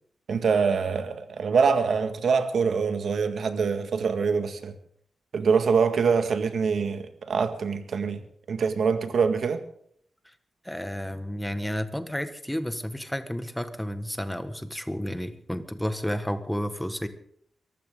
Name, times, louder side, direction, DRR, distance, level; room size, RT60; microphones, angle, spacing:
voice 1, 0.3-4.7 5.3-8.2 8.5-9.6, right 5 dB, 75° right, 1.8 m, -24 dB
voice 2, 10.6-17.1, equal, 5° left, 1.6 m, -31 dB
24.0 x 15.0 x 3.8 m
cardioid pair, 90°, 0 cm